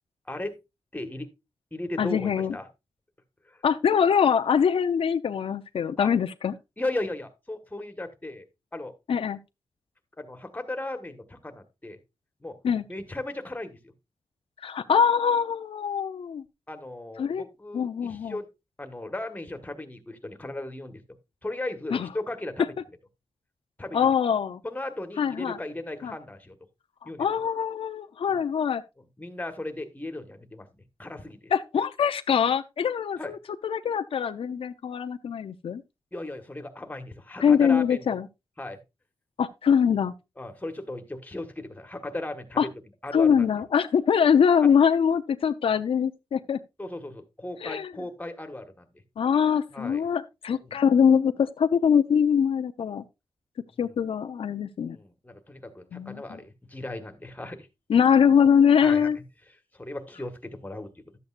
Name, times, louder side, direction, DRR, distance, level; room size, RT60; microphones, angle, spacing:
voice 1, 0.9-1.3 1.7-2.7 3.5-3.6 6.0-6.1 6.8-8.4 8.7-8.9 10.2-12.0 12.4-12.6 12.9-13.9 16.7-18.5 18.8-21.0 21.4-22.7 23.8-24.0 24.6-26.6 27.0-27.3 28.3-28.4 29.0-30.7 31.0-31.5 33.2-33.3 36.1-38.2 38.6-38.8 40.4-42.7 43.0-43.5 44.6-44.7 46.8-48.9 49.7-50.0 50.6-50.8 53.7-54.0 54.9-57.7 58.8-59.1 59.7-60.9, left 1 dB, 15° left, 1.5 m, -36 dB
voice 2, 2.0-2.6 3.6-6.5 9.1-9.4 12.6-12.8 14.6-16.4 17.2-17.4 17.7-18.4 21.9-22.1 23.9-24.6 25.2-25.6 26.0-26.1 27.2-28.8 31.5-33.4 33.6-35.8 37.4-38.3 39.4-40.1 42.6-42.7 43.1-46.6 47.6-47.9 49.2-53.0 53.8-55.0 55.9-56.4 57.9-59.2, left 7 dB, 85° left, 0.6 m, -23 dB
12.0 x 8.1 x 2.5 m
wide cardioid pair, 90°, 9 cm